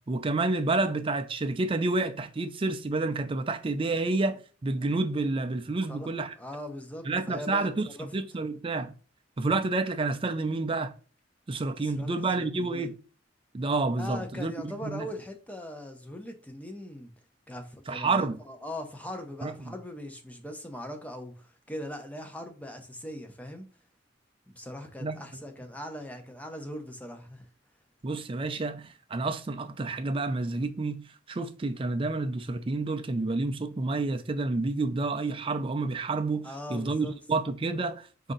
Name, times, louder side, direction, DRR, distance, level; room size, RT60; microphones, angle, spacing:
voice 1, 0.1-6.3 7.1-8.9 9.4-10.9 11.5-12.9 13.5-15.1 17.9-18.4 19.4-19.5 25.0-25.2 28.0-31.0 31.3-38.3, right 3 dB, 30° right, 0.4 m, -29 dB
voice 2, 6.4-8.1 11.8-12.9 13.9-17.1 17.5-23.7 24.5-27.5 36.4-37.2, left 1 dB, 10° left, 0.7 m, -40 dB
4.9 x 2.8 x 3.8 m
head